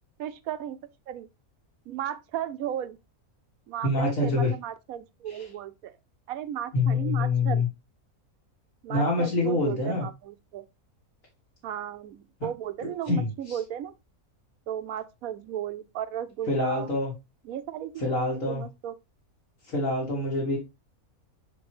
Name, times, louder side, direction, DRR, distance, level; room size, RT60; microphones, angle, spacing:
voice 1, 0.2-0.8 1.1-1.3 1.9-3.0 3.7-5.9 6.3-7.7 8.8-10.6 11.6-13.9 14.7-16.9 17.5-18.9, right 10 dB, 75° right, 1.1 m, -35 dB
voice 2, 3.8-4.5 5.3-5.5 6.7-7.7 8.9-10.1 13.1-13.6 16.5-17.1 18.0-18.6 19.7-20.6, left 3 dB, 60° left, 2.7 m, -26 dB
6.8 x 5.1 x 3.1 m
omnidirectional pair, 1.6 m